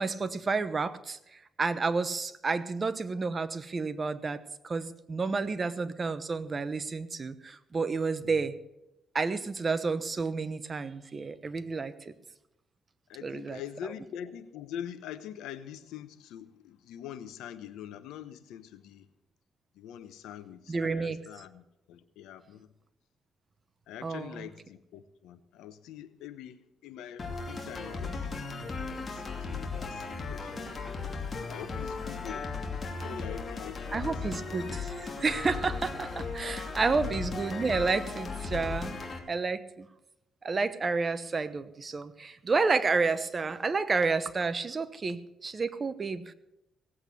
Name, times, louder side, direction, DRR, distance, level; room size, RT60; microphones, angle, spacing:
voice 1, 0.0-8.6 9.1-12.1 13.2-13.6 20.7-21.2 24.0-24.5 33.9-38.9 39.3-39.9 40.4-46.3, right 4 dB, 35° right, 13 dB, 1.0 m, -30 dB
voice 2, 13.1-19.1 19.7-22.7 23.9-28.3 29.0-31.2 31.5-32.5 33.0-34.1 36.9-37.2, left 10 dB, 90° left, 13 dB, 1.0 m, -44 dB
sound 1, 27.2-39.2, left 4 dB, 35° left, 2.7 m, -36 dB
18.0 x 8.2 x 7.0 m, 0.88 s
cardioid pair, 90°, 0 cm